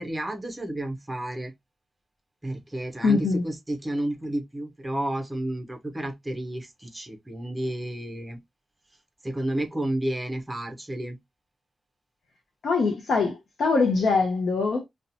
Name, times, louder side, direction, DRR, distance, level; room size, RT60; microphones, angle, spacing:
voice 1, 0.0-1.5 2.4-8.4 9.2-11.2, right 1 dB, 15° right, 0.5 m, -31 dB
voice 2, 3.0-3.4 12.6-14.8, left 4 dB, 85° left, 0.5 m, -23 dB
2.8 x 2.1 x 2.5 m
wide cardioid pair, 160°, 0 cm